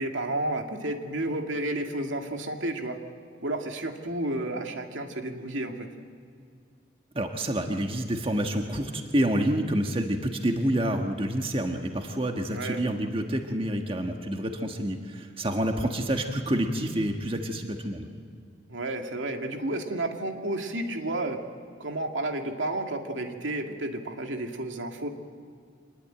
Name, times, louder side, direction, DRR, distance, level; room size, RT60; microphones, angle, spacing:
voice 1, 0.0-3.0 3.4-5.9 12.5-12.8 18.7-21.4 21.8-25.1, right 1 dB, 85° right, 3 dB, 2.3 m, -31 dB
voice 2, 7.1-18.1, right 1 dB, 30° right, 4 dB, 1.5 m, -28 dB
25.0 x 21.0 x 8.9 m, 2.2 s
head